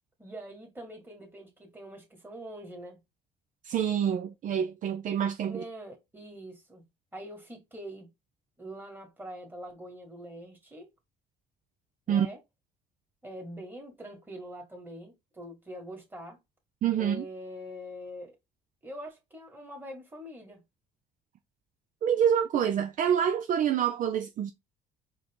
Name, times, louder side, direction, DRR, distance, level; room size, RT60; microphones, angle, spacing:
voice 1, 0.2-3.0 5.5-6.8 7.1-8.1 8.6-10.9 12.1-12.4 13.2-16.4 17.0-18.4 18.8-20.6, equal, 10° right, 2.0 m, -44 dB
voice 2, 3.6-5.6 12.1-12.3 16.8-17.2 22.0-24.5, right 9 dB, 50° right, 0.5 m, -27 dB
4.7 x 2.7 x 3.6 m
cardioid pair, 110°, 17 cm